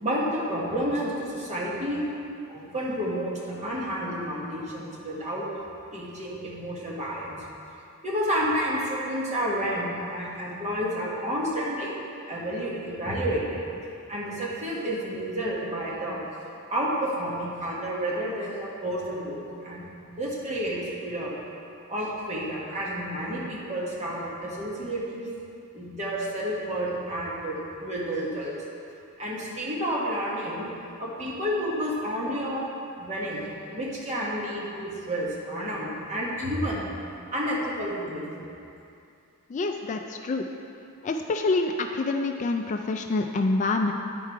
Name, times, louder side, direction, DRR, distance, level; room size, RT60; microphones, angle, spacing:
voice 1, 0.0-2.0 2.5-5.4 5.9-7.4 8.0-11.9 12.3-13.7 14.1-16.2 16.7-19.9 20.2-21.3 21.9-25.3 25.7-28.6 29.2-30.7 31.0-32.7 33.0-36.9 37.3-38.5, equal, 30° right, -5 dB, 1.5 m, -30 dB
voice 2, 39.5-40.5 41.0-43.9, left 3 dB, 35° left, 4 dB, 0.3 m, -26 dB
9.8 x 4.6 x 4.7 m, 2.6 s
head